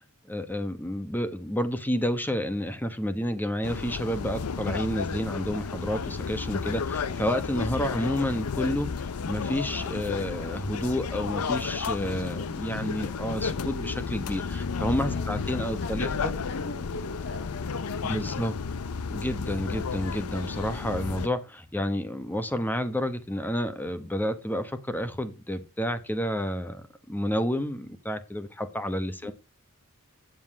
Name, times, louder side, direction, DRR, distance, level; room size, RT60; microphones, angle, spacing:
voice 1, 0.3-16.3 18.0-18.5 19.0-29.3, equal, 10° left, 1.0 m, -30 dB
sound 1, 3.6-21.3, left 5 dB, 90° left, 0.6 m, -32 dB
voice 2, 11.9-12.6 15.1-18.6 29.2-29.3, left 2 dB, 55° left, 1.9 m, -42 dB
9.3 x 7.7 x 4.8 m
head